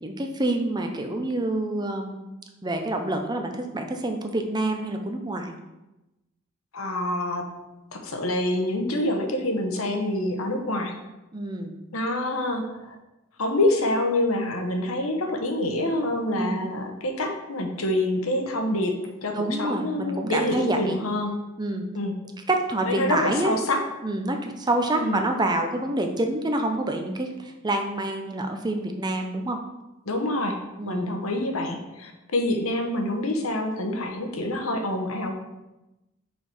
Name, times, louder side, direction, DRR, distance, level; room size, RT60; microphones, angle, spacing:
voice 1, 0.0-2.2 2.6-5.5 11.3-11.7 16.3-16.6 19.3-21.0 21.6-21.9 22.5-23.6 24.0-29.6 30.8-31.1, right 2 dB, 20° right, 4 dB, 0.6 m, -27 dB
voice 2, 6.7-7.5 7.9-10.9 11.9-13.0 13.4-21.4 21.9-22.1 22.8-23.8 25.0-25.2 30.1-35.3, left 1 dB, 85° left, 4 dB, 1.0 m, -26 dB
5.5 x 4.5 x 4.9 m, 0.99 s
head